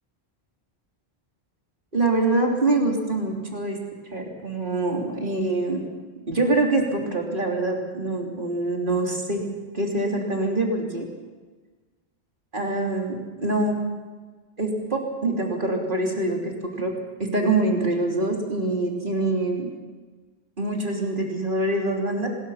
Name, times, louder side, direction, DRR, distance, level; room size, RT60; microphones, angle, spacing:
voice 1, 1.9-3.8 4.1-5.8 6.3-9.4 9.7-11.1 12.5-13.8 14.6-16.9 17.3-19.7 20.6-22.3, right 2 dB, 50° right, 0 dB, 3.6 m, -24 dB
24.5 x 21.0 x 5.8 m, 1.4 s
omnidirectional pair, 1.1 m